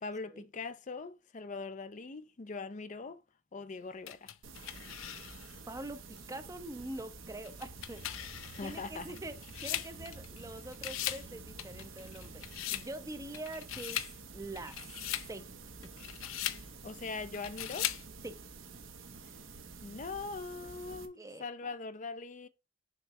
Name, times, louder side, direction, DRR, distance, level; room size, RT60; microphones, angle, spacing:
voice 1, 0.0-3.2 3.5-4.3 8.4-9.1 16.8-17.9 19.8-22.5, left 4 dB, 40° left, 0.5 m, -41 dB
sound 1, 4.1-5.6 6.2-6.3 7.4-10.4 10.7-11.3 11.6-12.9 13.3-14.1 14.6-15.3 15.8-16.6 17.3-18.0, left 13 dB, 80° left, 0.5 m, -39 dB
sound 2, 4.4-21.1, right 4 dB, 75° right, 1.1 m, -50 dB
voice 2, 5.7-8.0 8.6-12.4 12.7-14.1 14.3-14.8 15.3-15.5 15.8-15.9 18.2-18.4 21.2-21.4, right 1 dB, 15° right, 0.6 m, -44 dB
sound 3, 7.6-12.6, right 1 dB, 55° right, 1.2 m, -55 dB
6.8 x 3.2 x 6.0 m
head